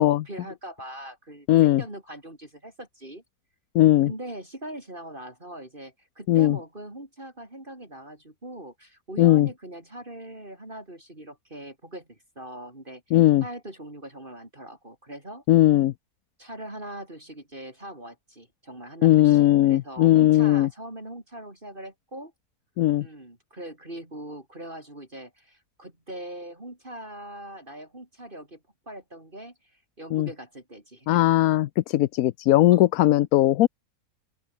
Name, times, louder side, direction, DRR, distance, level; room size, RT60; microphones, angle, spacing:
voice 1, 0.0-3.2 4.1-15.4 16.4-22.3 23.0-28.6 28.9-31.2 32.7-32.9, right 1 dB, 30° right, 5.0 m, -41 dB
voice 2, 1.5-1.8 3.7-4.1 6.3-6.6 9.2-9.5 13.1-13.4 15.5-15.9 19.0-20.7 22.8-23.1 30.1-30.3 31.1-33.7, left 14 dB, 70° left, 1.0 m, -18 dB
open air
omnidirectional pair, 1.7 m